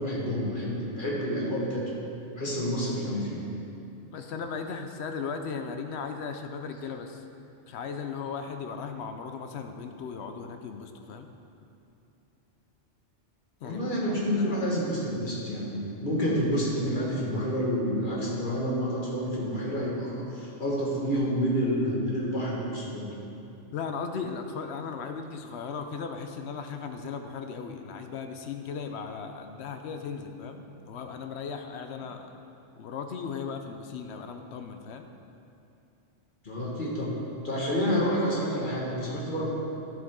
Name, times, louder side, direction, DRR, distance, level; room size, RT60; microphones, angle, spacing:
voice 1, 0.0-1.9 2.4-3.4 4.1-4.2 13.6-23.1 36.4-37.1 37.4-39.5, equal, 40° left, -5 dB, 1.7 m, -29 dB
voice 2, 4.1-7.2 7.7-11.3 13.6-13.9 14.4-14.7 23.7-32.2 32.8-35.1, left 5 dB, 65° left, 6 dB, 0.8 m, -37 dB
11.0 x 7.1 x 3.7 m, 2.7 s
omnidirectional pair, 1.3 m